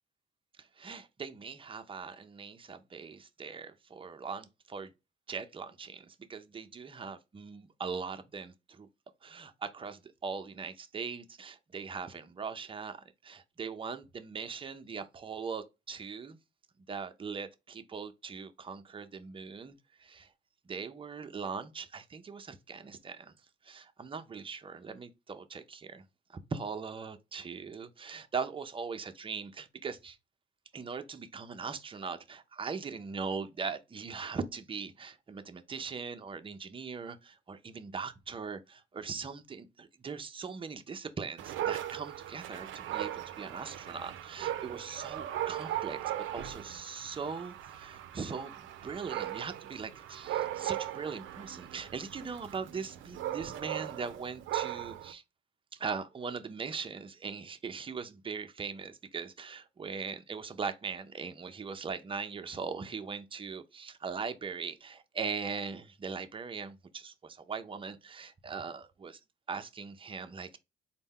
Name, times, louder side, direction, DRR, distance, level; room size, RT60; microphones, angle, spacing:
voice 1, 0.6-4.9 5.3-8.9 9.2-16.4 16.9-20.3 20.7-23.3 23.6-26.0 26.5-30.2 30.7-55.2 55.7-69.2 69.5-70.6, right 5 dB, 25° right, 0.5 m, -40 dB
Dog, 41.4-55.1, right 12 dB, 80° right, 0.4 m, -38 dB
4.1 x 2.1 x 3.6 m
cardioid pair, 90°, 20 cm